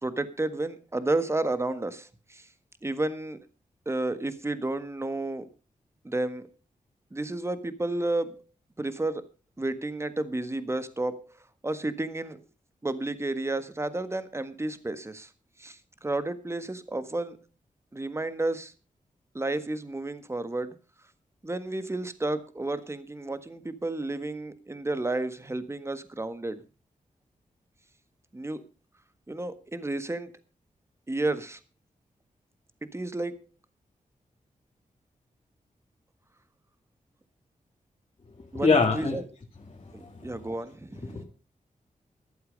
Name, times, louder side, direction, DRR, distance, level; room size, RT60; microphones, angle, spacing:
voice 1, 0.0-2.5 2.8-3.4 3.8-5.4 6.0-6.5 7.1-8.4 8.8-9.2 9.6-11.3 11.6-12.4 12.8-15.3 15.6-17.4 17.9-18.7 19.3-20.8 21.4-26.6 28.3-28.6 29.3-30.3 31.1-31.6 32.9-33.4 38.5-39.2 39.9-41.2, right 2 dB, 20° right, 12 dB, 1.6 m, -31 dB
voice 2, 38.6-39.2 40.0-40.3 41.1-41.2, left 4 dB, 40° left, 0 dB, 2.2 m, -23 dB
14.0 x 12.0 x 5.3 m, 0.32 s
wide cardioid pair, 95°, 14 cm